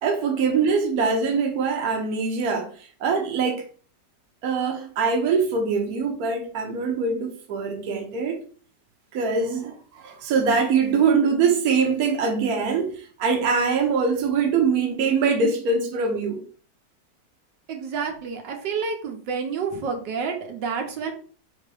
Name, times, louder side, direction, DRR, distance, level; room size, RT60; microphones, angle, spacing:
voice 1, 0.0-3.6 4.4-8.4 9.1-16.4, right 5 dB, 65° right, 1.3 m, -23 dB
voice 2, 17.7-21.1, right 5 dB, 85° right, 1.5 m, -29 dB
3.8 x 2.9 x 4.7 m
omnidirectional pair, 1.9 m